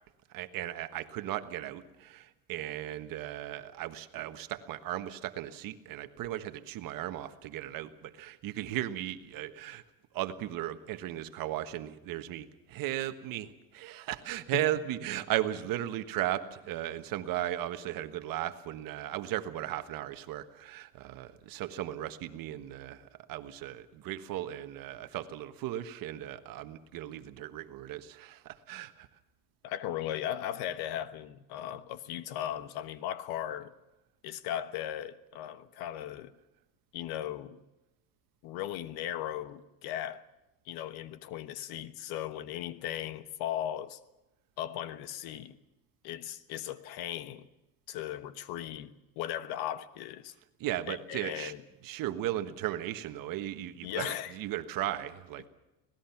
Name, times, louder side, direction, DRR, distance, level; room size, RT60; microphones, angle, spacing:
voice 1, 0.3-9.8 10.1-29.1 50.6-51.5 51.8-55.5, right 13 dB, 50° right, 1.5 m, -36 dB
voice 2, 29.6-33.7 34.2-36.3 36.9-37.6 38.4-40.2 40.6-44.0 44.6-45.6 46.0-47.5 47.9-50.3 50.9-51.6 53.8-54.3, left 11 dB, 60° left, 1.3 m, -37 dB
25.5 x 18.5 x 5.9 m
cardioid pair, 135°, 43 cm